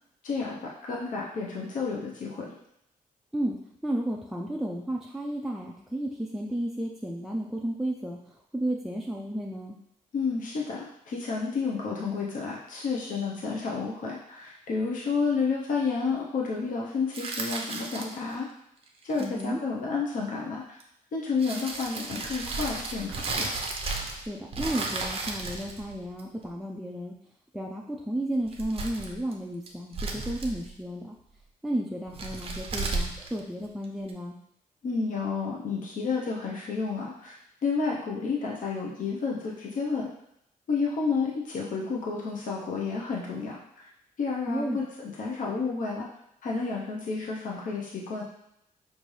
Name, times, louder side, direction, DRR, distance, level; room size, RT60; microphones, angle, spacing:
voice 1, 0.2-2.6 10.1-18.5 19.0-20.8 21.1-23.5 34.8-37.3 37.6-40.1 40.7-43.9 44.2-46.1 46.4-48.2, left 4 dB, 65° left, -3 dB, 0.8 m, -30 dB
voice 2, 3.3-9.8 19.2-19.6 24.3-27.1 27.5-31.2 31.6-34.4 44.5-44.8, right 1 dB, ahead, -2 dB, 0.3 m, -33 dB
sound 1, 17.1-18.3 19.0-19.4 20.8-20.9 21.4-24.3 24.5-26.4 28.4-29.3 29.7-30.7 32.1-34.1, right 3 dB, 40° right, 0.6 m, -34 dB
5.3 x 2.6 x 3.2 m, 0.77 s
wide cardioid pair, 135°, 15 cm